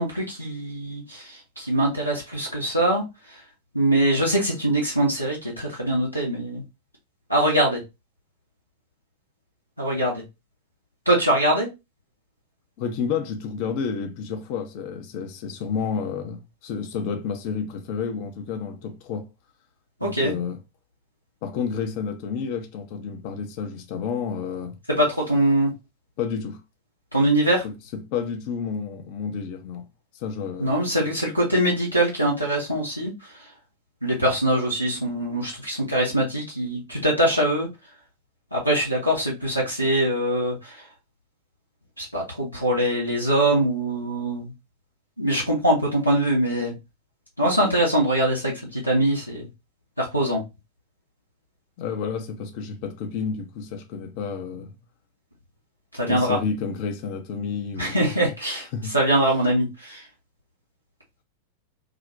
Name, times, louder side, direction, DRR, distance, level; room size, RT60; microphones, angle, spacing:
voice 1, 0.0-3.4 3.7-6.6 7.3-7.8 9.8-10.2 11.1-11.7 20.0-20.3 24.9-25.7 27.1-27.7 30.6-33.5 34.0-37.7 38.5-40.8 42.0-44.5 45.2-46.7 47.4-49.5 50.0-50.4 55.9-56.4 57.8-58.7 58.9-60.0, right 1 dB, 90° left, 0.7 m, -23 dB
voice 2, 12.8-19.3 20.0-20.6 21.4-24.8 26.2-26.6 27.6-29.9 30.1-31.2 51.8-54.7 56.0-58.0 58.7-59.0, left 6 dB, 45° left, 0.5 m, -30 dB
2.5 x 2.0 x 2.5 m
figure-of-eight pair, 90°, 0 cm